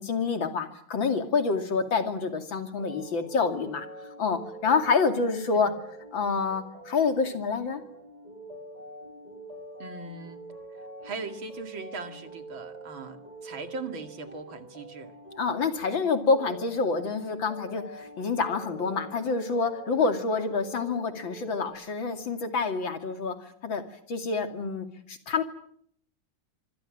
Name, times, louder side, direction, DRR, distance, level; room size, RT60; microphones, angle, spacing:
voice 1, 0.0-3.9 4.2-5.7 6.1-7.8 15.4-23.8 24.1-25.4, left 4 dB, 75° left, 6 dB, 3.3 m, -27 dB
sound 1, 2.8-21.7, right 1 dB, 20° left, 8.0 m, -45 dB
voice 2, 9.8-10.4 10.7-15.1, right 4 dB, 80° right, 7 dB, 3.0 m, -40 dB
25.5 x 22.0 x 7.7 m, 0.65 s
omnidirectional pair, 2.2 m